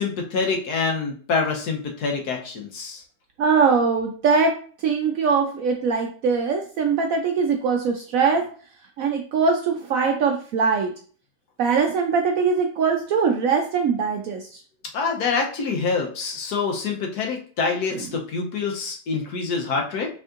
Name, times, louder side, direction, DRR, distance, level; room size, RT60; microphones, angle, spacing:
voice 1, 0.0-3.0 14.9-20.1, left 4 dB, 70° left, 2 dB, 1.3 m, -26 dB
voice 2, 3.4-4.5 4.8-8.5 9.0-10.9 11.6-14.6 17.9-18.0, right 5 dB, 70° right, 3 dB, 0.8 m, -22 dB
5.1 x 3.6 x 2.5 m, 0.44 s
omnidirectional pair, 1.8 m